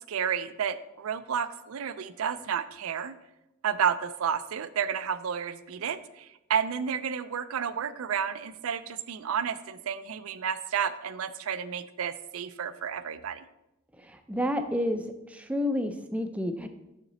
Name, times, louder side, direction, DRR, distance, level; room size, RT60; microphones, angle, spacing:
voice 1, 0.1-3.1 3.6-13.4, right 7 dB, 85° right, 13 dB, 0.4 m, -31 dB
voice 2, 14.0-15.0 15.3-16.7, left 1 dB, 5° right, 6 dB, 0.4 m, -30 dB
6.9 x 5.9 x 4.0 m, 0.90 s
head